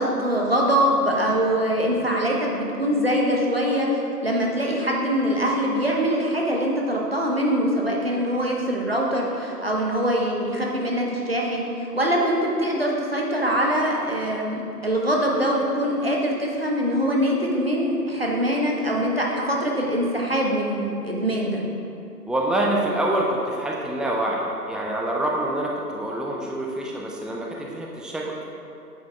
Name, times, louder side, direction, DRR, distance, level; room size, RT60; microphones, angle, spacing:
voice 1, 0.0-21.6, equal, 35° right, -2 dB, 1.0 m, -23 dB
voice 2, 22.3-28.5, right 1 dB, ahead, -2 dB, 0.4 m, -26 dB
9.2 x 4.4 x 4.5 m, 2.6 s
figure-of-eight pair, 165°, 50 cm